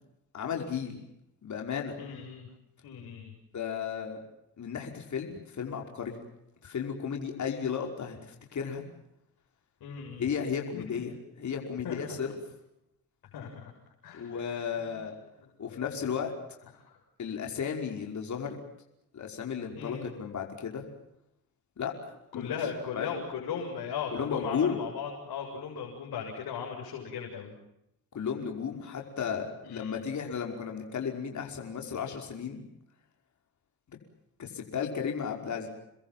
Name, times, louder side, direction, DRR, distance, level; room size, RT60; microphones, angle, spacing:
voice 1, 0.3-1.0 1.4-2.0 3.5-4.2 4.6-6.2 6.6-8.9 10.2-12.4 14.1-15.2 15.6-16.3 17.2-18.6 19.1-20.9 21.8-22.5 22.9-23.1 24.1-24.8 28.1-32.6 34.4-35.7, left 7 dB, 45° left, 2 dB, 5.4 m, -34 dB
voice 2, 2.0-2.5 2.8-3.3 9.8-10.3 10.7-10.8 11.8-12.2 13.3-13.7 14.0-14.9 15.7-15.8 19.8-20.1 22.3-27.5 29.6-29.9, left 6 dB, 65° left, 0 dB, 7.3 m, -37 dB
30.0 x 21.5 x 7.6 m, 0.83 s
cardioid pair, 95°, 39 cm